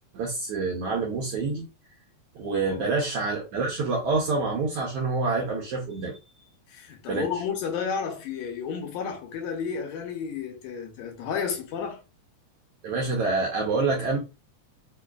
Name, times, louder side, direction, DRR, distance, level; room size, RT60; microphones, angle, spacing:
voice 1, 0.1-1.7 2.3-6.2 7.1-7.3 12.8-14.2, right 3 dB, 70° right, 1.4 m, -27 dB
voice 2, 6.7-12.0, left 6 dB, 75° left, 2.0 m, -32 dB
4.8 x 2.4 x 2.2 m
omnidirectional pair, 3.4 m